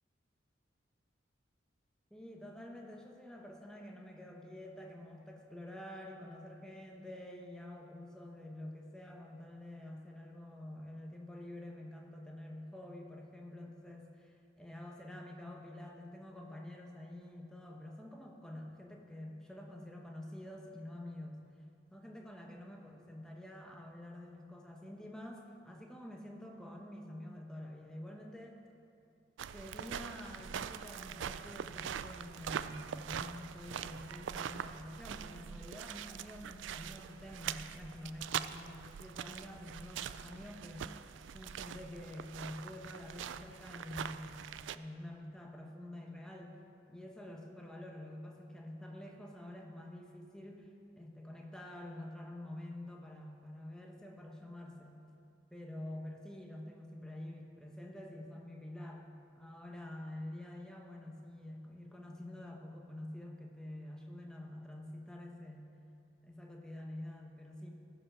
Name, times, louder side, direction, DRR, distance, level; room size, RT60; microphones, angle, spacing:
voice 1, 2.1-21.4 21.9-28.6 29.5-40.9 41.3-46.6 46.9-55.0 55.5-59.1 59.3-65.8 66.2-67.7, left 1 dB, 5° left, 0 dB, 1.0 m, -48 dB
sound 1, 29.4-44.8, right 8 dB, 75° right, 0.3 m, -43 dB
15.0 x 5.6 x 6.1 m, 2.5 s
head